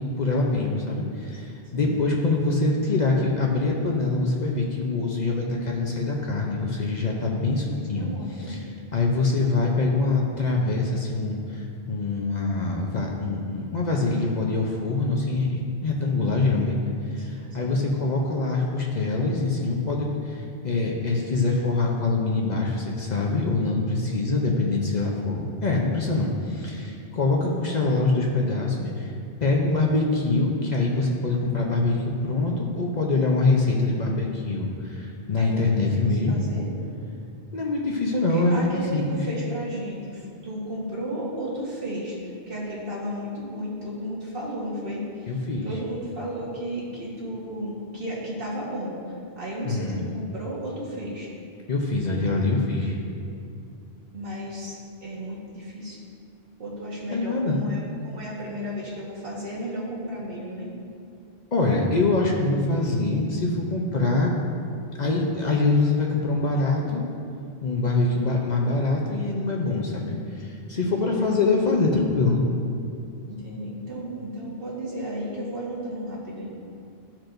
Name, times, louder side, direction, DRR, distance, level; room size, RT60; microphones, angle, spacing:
voice 1, 0.0-16.8 17.1-29.1 29.4-36.4 37.5-39.2 45.3-45.7 49.6-50.1 51.7-53.0 57.1-57.6 61.5-64.3 65.0-67.1 67.6-72.4, left 3 dB, 50° left, -1 dB, 0.8 m, -24 dB
voice 2, 7.8-8.6 17.0-17.3 17.6-17.7 26.7-26.9 35.4-35.9 36.3-36.7 38.1-45.0 45.6-49.0 49.4-51.3 54.1-56.0 56.6-60.7 70.8-71.4 73.2-76.5, equal, 60° right, -6 dB, 1.7 m, -33 dB
13.0 x 4.4 x 2.6 m, 2.5 s
omnidirectional pair, 1.1 m